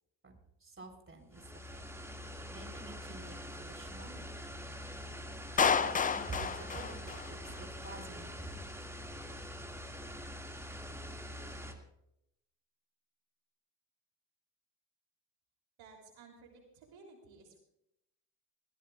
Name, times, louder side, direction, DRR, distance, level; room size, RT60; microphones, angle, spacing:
voice 1, 0.6-1.8 2.5-4.3 5.8-8.6, right 3 dB, 25° right, 2 dB, 3.8 m, -48 dB
sound 1, 1.3-11.7, left 1 dB, 5° right, 2.1 m, -45 dB
Clapping, 5.6-7.6, left 6 dB, 20° left, 0.4 m, -30 dB
voice 2, 15.8-17.6, right 4 dB, 65° right, 2 dB, 3.3 m, -56 dB
20.0 x 15.5 x 2.4 m, 0.82 s
hypercardioid pair, 60°, 49 cm